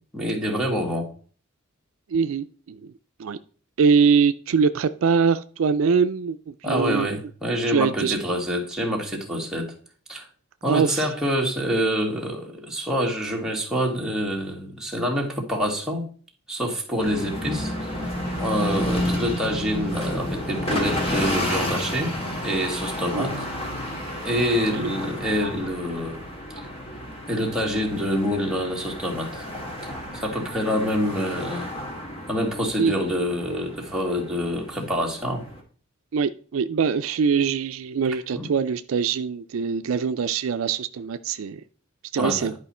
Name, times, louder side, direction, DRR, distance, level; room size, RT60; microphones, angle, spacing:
voice 1, 0.1-1.1 6.6-9.7 10.1-10.3 10.6-16.1 16.5-17.9 18.4-22.2 22.4-23.4 24.2-26.2 27.3-29.4 29.8-31.7 32.3-35.4 38.3-38.5 42.2-42.5, equal, 5° right, -2 dB, 1.8 m, -26 dB
voice 2, 2.1-2.9 3.2-3.4 3.8-7.1 7.7-8.2 10.7-11.1 23.1-23.4 24.7-24.9 32.8-33.0 36.1-41.6 42.1-42.5, right 6 dB, 70° right, 11 dB, 0.4 m, -23 dB
sound 1, 17.0-35.6, equal, 30° left, 2.0 m, -31 dB
10.5 x 5.0 x 4.3 m, 0.42 s
head